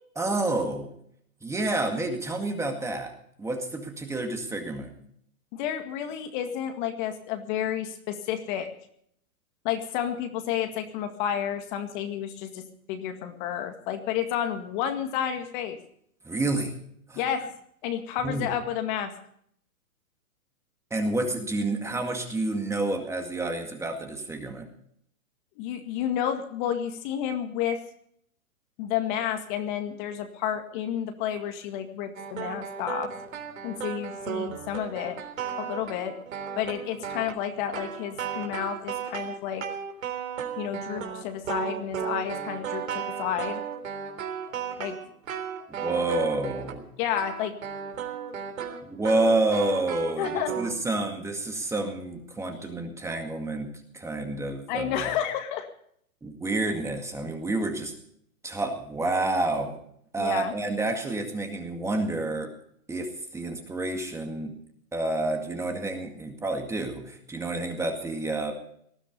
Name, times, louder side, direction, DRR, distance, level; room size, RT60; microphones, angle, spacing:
voice 1, 0.2-0.9 1.4-3.1 3.4-4.9 16.2-16.7 17.1-17.2 18.2-18.5 20.9-24.7 45.7-46.9 48.8-50.3 50.6-55.1 56.2-57.9 58.4-59.8 60.1-62.5 62.9-64.5 64.9-68.5, right 2 dB, 5° right, 4 dB, 2.0 m, -29 dB
voice 2, 5.5-8.7 9.6-15.8 17.2-17.5 17.8-19.1 25.6-27.8 28.8-33.1 33.6-35.2 35.6-36.2 36.6-39.6 40.6-43.6 44.8-45.0 47.0-47.5 50.2-50.5 54.7-55.7 60.2-60.5, left 9 dB, 35° left, 6 dB, 2.0 m, -31 dB
sound 1, 32.1-46.8 47.1-50.7, right 8 dB, 70° right, 3.7 m, -35 dB
19.5 x 13.5 x 5.3 m, 0.67 s
hypercardioid pair, 140°, 42 cm